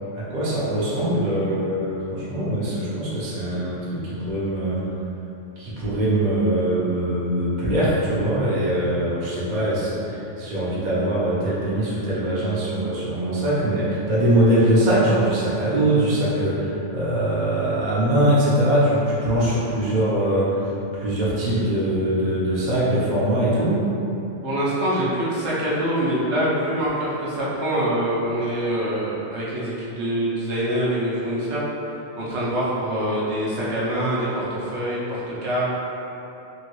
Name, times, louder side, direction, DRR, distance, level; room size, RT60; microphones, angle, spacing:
voice 1, 0.1-4.8 5.6-23.8, right 1 dB, 45° right, -8 dB, 0.8 m, -22 dB
voice 2, 24.4-31.6 32.2-35.6, right 1 dB, 70° right, -8 dB, 1.0 m, -25 dB
2.9 x 2.7 x 3.0 m, 3.0 s
omnidirectional pair, 1.2 m